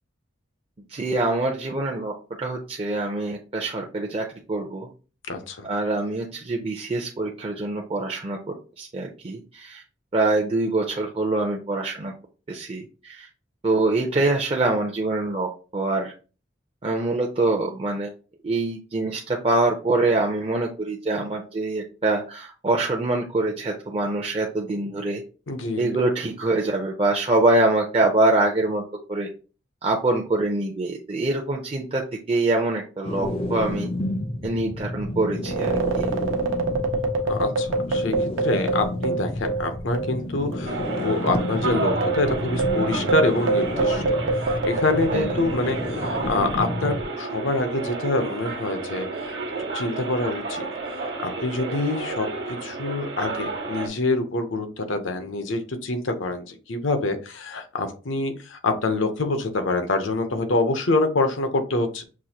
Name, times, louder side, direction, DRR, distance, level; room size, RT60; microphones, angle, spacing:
voice 1, 0.9-4.9 5.6-9.8 10.1-12.1 12.5-13.3 13.6-16.1 16.8-18.1 18.4-25.2 25.8-28.8 29.1-29.3 29.8-32.0 32.3-33.9 34.4-36.1 45.1-45.3, right 2 dB, 30° right, 0 dB, 0.5 m, -24 dB
voice 2, 5.3-5.7 25.5-25.8 37.2-38.1 38.4-49.4 49.7-52.3 52.6-62.0, left 2 dB, 85° left, 7 dB, 0.8 m, -26 dB
sound 1, 33.0-47.0, left 1 dB, 30° left, 0.5 m, -31 dB
sound 2, 35.4-40.3 40.5-40.6 41.3-46.0, right 3 dB, 85° right, 0.7 m, -26 dB
sound 3, 40.7-53.9, right 3 dB, 60° right, 1.1 m, -31 dB
6.1 x 2.5 x 2.8 m, 0.35 s
head